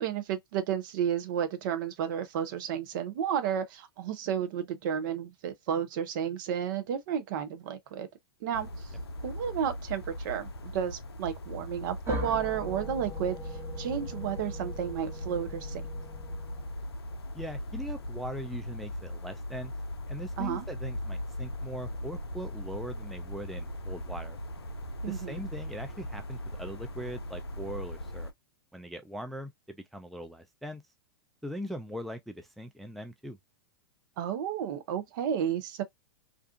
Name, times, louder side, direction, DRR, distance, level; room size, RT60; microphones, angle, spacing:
voice 1, 0.0-8.1 8.4-8.9 9.2-13.4 13.8-15.8 20.4-20.7 25.0-25.4 34.2-35.8, right 8 dB, 55° right, 0.6 m, -32 dB
sound 1, 8.5-28.3, left 1 dB, 80° left, 0.5 m, -39 dB
sound 2, 12.1-16.8, equal, 20° right, 0.9 m, -41 dB
voice 2, 17.3-19.7 20.1-24.4 25.1-28.3 28.7-30.8 31.4-33.4, equal, ahead, 0.3 m, -40 dB
2.6 x 2.3 x 2.3 m
hypercardioid pair, 105°, 13 cm